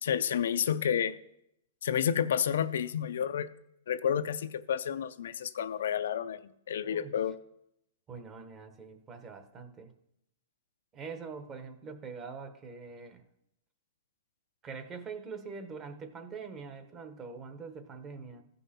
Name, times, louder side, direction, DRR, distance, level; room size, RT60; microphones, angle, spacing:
voice 1, 0.0-1.2 1.8-3.5 3.9-7.4, left 8 dB, 75° left, 0.4 m, -30 dB
voice 2, 6.8-7.2 8.1-9.9 10.9-13.2 14.6-18.4, right 5 dB, 20° right, 0.9 m, -44 dB
15.0 x 5.4 x 4.2 m
hypercardioid pair, 160°, 0 cm